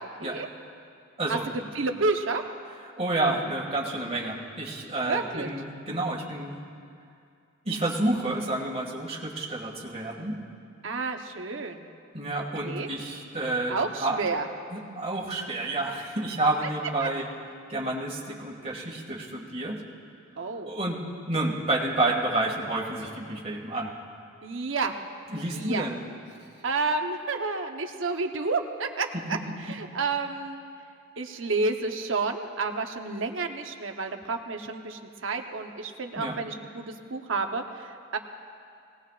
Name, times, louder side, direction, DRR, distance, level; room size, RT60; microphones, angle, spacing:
voice 1, 1.3-2.4 5.1-5.5 10.8-11.9 12.6-12.9 13.7-14.5 17.0-17.1 20.4-20.7 24.4-24.9 25.5-25.9 26.6-29.4 29.7-30.6 31.2-38.2, right 3 dB, 80° right, 5 dB, 1.0 m, -30 dB
voice 2, 2.8-6.6 7.6-10.4 12.1-14.2 14.7-17.3 17.7-19.8 20.7-21.0 21.3-23.9 25.3-26.0 29.1-29.8 36.2-36.3, right 2 dB, 30° right, -2 dB, 2.1 m, -29 dB
22.0 x 18.5 x 2.5 m, 2.4 s
head